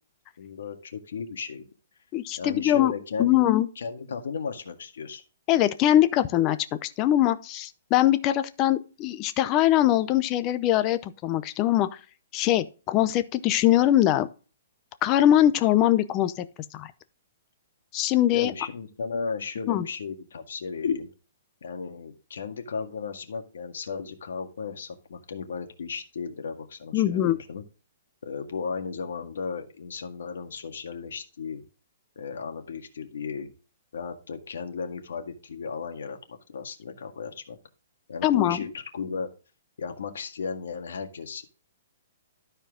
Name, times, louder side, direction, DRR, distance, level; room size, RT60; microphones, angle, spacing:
voice 1, 0.4-1.7 2.4-5.2 18.3-21.1 21.6-27.6 28.2-31.6 32.2-33.5 33.9-37.6 38.1-39.3 39.8-41.5, left 5 dB, 75° left, 1.9 m, -35 dB
voice 2, 2.1-2.9 3.2-3.7 5.5-11.9 12.3-14.3 15.0-16.4 16.7-16.9 17.9-18.5 19.7-19.9 26.9-27.4 38.2-38.6, left 13 dB, 20° left, 0.5 m, -22 dB
13.0 x 4.5 x 3.6 m
hypercardioid pair, 175°, 0 cm